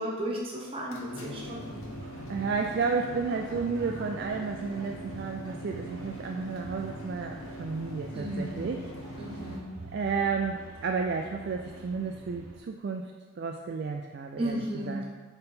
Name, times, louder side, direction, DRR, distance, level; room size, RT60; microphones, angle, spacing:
voice 1, 0.0-1.8 8.1-8.9 9.2-9.7 14.4-15.0, right 1 dB, 25° right, -3 dB, 1.1 m, -34 dB
sound 1, 0.7-9.6, equal, 80° left, 0.8 m, -42 dB
sound 2, 1.3-12.6, right 2 dB, 90° right, 0.9 m, -46 dB
voice 2, 2.3-8.8 9.9-15.0, right 5 dB, 50° right, 2 dB, 0.3 m, -32 dB
4.3 x 3.9 x 5.5 m, 1.4 s
head